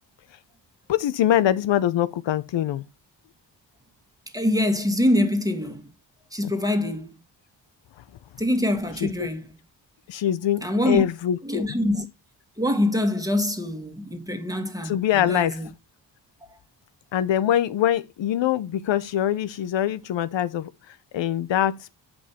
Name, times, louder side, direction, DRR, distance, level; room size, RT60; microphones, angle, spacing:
voice 1, 0.9-2.9 6.4-6.5 9.0-9.3 10.1-11.8 14.8-15.6 17.1-22.0, left 11 dB, 85° left, 0.8 m, -24 dB
voice 2, 4.3-5.8 6.3-7.1 8.4-9.4 10.6-11.0 11.5-12.0 12.6-15.7, left 1 dB, 10° right, 1.6 m, -24 dB
8.6 x 5.4 x 4.3 m
wide cardioid pair, 135°, 43 cm